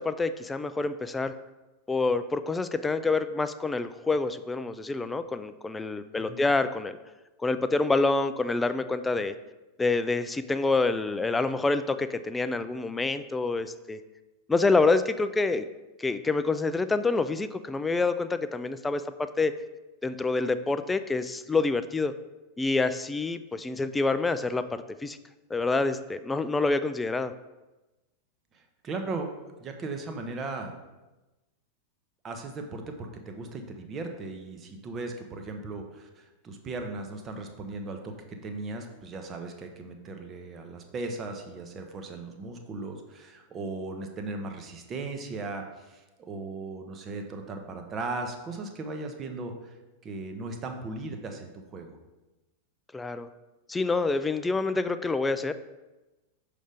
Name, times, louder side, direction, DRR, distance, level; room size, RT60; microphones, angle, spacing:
voice 1, 0.0-1.3 1.9-7.0 7.4-9.4 9.8-14.0 14.5-15.7 16.0-19.5 20.0-22.1 22.6-25.2 25.5-27.3 52.9-53.3 53.7-55.5, left 3 dB, 10° left, 11 dB, 0.3 m, -27 dB
voice 2, 6.2-6.5 28.5-29.3 29.6-30.8 32.2-49.8 50.0-52.0, right 3 dB, 25° right, 5 dB, 0.8 m, -37 dB
6.3 x 3.3 x 5.1 m, 1.1 s
figure-of-eight pair, 90°, 0 cm